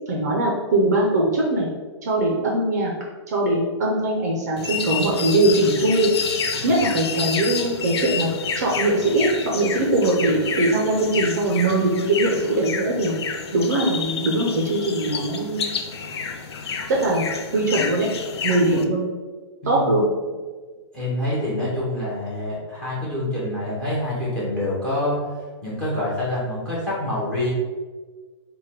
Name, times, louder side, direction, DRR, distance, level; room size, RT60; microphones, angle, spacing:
voice 1, 0.0-1.7 2.0-2.9 3.3-6.1 6.6-8.3 8.6-9.3 9.5-13.1 13.5-15.7 17.0-17.2 17.5-18.1 18.4-19.0 19.7-20.1, right 2 dB, 35° right, -2 dB, 0.5 m, -21 dB
sound 1, 4.6-18.8, left 6 dB, 55° left, 0.4 m, -29 dB
voice 2, 20.9-25.2 25.6-27.5, left 1 dB, 5° left, -7 dB, 0.7 m, -26 dB
3.2 x 2.2 x 4.2 m, 1.4 s
hypercardioid pair, 180°, 16 cm